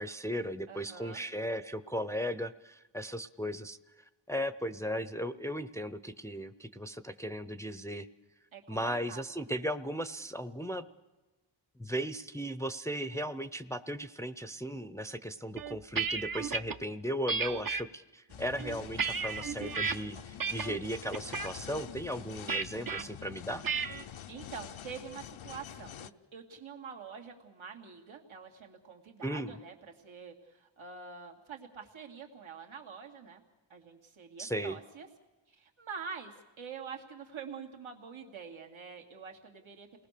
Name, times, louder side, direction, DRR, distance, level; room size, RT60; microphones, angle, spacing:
voice 1, 0.0-3.8 4.3-8.1 8.7-10.9 11.8-23.6 29.2-29.6 34.4-34.8, equal, 5° left, 11 dB, 0.7 m, -36 dB
voice 2, 0.7-1.2 8.5-9.2 22.7-23.3 24.3-33.4 33.7-35.1 35.5-40.1, right 6 dB, 80° right, 2 dB, 2.7 m, -46 dB
sound 1, 15.6-16.8 17.3-17.8 18.4-19.9 20.4-20.8 21.1-21.5 22.5-23.0 23.6-24.0, right 5 dB, 45° right, 1.0 m, -33 dB
sound 2, 18.3-26.1, left 10 dB, 80° left, 0.8 m, -47 dB
28.5 x 19.5 x 6.8 m, 1.1 s
wide cardioid pair, 110°, 47 cm